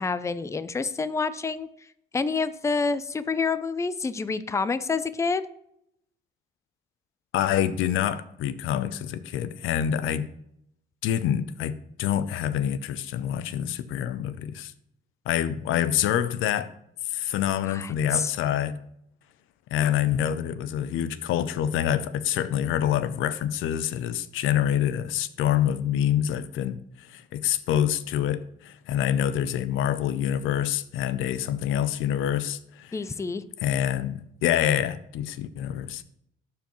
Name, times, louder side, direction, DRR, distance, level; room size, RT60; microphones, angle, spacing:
voice 1, 0.0-1.7 2.1-5.4 17.7-18.3 32.9-33.4, left 4 dB, 15° left, 0.4 m, -28 dB
voice 2, 7.3-10.3 11.0-14.7 15.3-16.7 17.0-18.8 19.7-33.0 33.6-36.0, left 10 dB, 90° left, 0.5 m, -26 dB
12.0 x 4.6 x 3.0 m
cardioid pair, 90°, 20 cm